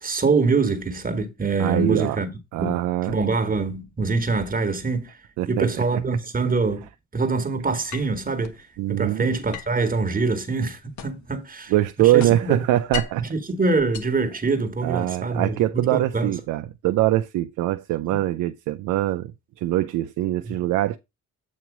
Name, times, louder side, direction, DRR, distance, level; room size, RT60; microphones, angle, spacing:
voice 1, 0.0-2.3 2.6-2.8 3.1-5.2 5.5-6.9 7.1-11.7 12.0-12.6 13.2-16.3 18.1-18.2, right 4 dB, 30° right, 1.5 m, -24 dB
voice 2, 1.6-2.2 2.5-3.2 5.4-5.7 5.9-6.0 8.8-9.3 11.7-13.2 14.8-19.3 19.6-21.0, right 14 dB, 85° right, 0.6 m, -23 dB
sound 1, 7.9-8.6 9.5-11.4 11.7-13.3 13.8-14.9, left 8 dB, 70° left, 1.0 m, -37 dB
8.3 x 3.0 x 6.0 m
cardioid pair, 90°, 30 cm